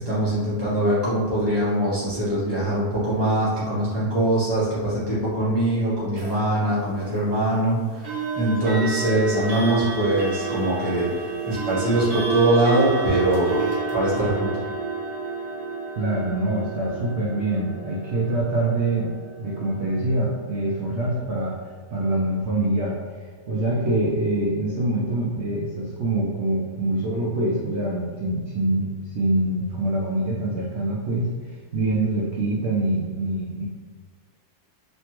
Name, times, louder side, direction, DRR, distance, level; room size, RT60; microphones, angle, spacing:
voice 1, 0.0-11.1 11.4-13.6 13.9-14.5, right 1 dB, 25° left, -11 dB, 0.5 m, -22 dB
sound 1, 6.2-6.4 8.0-20.9, right 5 dB, 50° right, 1.0 m, -30 dB
voice 2, 13.6-14.0 16.0-21.6 21.9-33.7, right 1 dB, 75° right, -4 dB, 0.6 m, -25 dB
3.3 x 2.2 x 2.9 m, 1.5 s
omnidirectional pair, 1.7 m